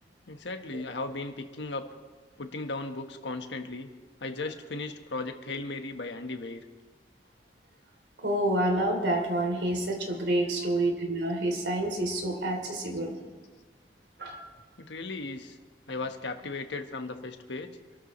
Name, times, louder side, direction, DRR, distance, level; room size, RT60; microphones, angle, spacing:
voice 1, 0.3-1.9 2.4-3.9 4.2-6.6 14.8-15.6 15.9-17.7, left 3 dB, 80° left, 6 dB, 1.4 m, -36 dB
voice 2, 8.2-13.2 14.2-14.5, right 1 dB, 75° right, 2 dB, 3.2 m, -28 dB
26.5 x 13.5 x 3.2 m, 1.5 s
head